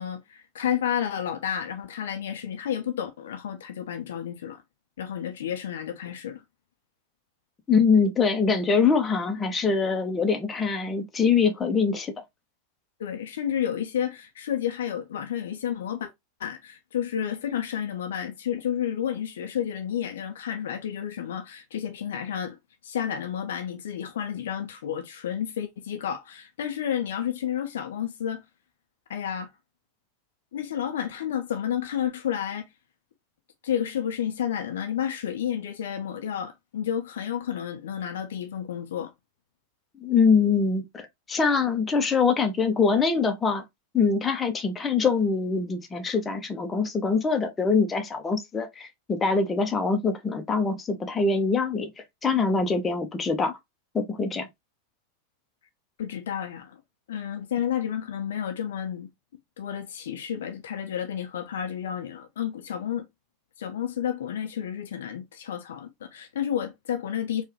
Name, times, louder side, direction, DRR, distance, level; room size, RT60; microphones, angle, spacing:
voice 1, 0.0-4.6 5.0-6.4 13.0-16.1 16.4-22.6 22.8-28.4 29.1-29.5 30.5-32.7 33.6-39.1 56.0-56.8 57.1-59.1 59.6-63.1 63.6-67.4, left 9 dB, 60° left, 0.6 m, -31 dB
voice 2, 7.7-12.1 40.0-43.6 43.9-53.5 53.9-54.5, left 5 dB, 20° left, 0.8 m, -24 dB
4.5 x 2.5 x 3.0 m
figure-of-eight pair, 90°, 0 cm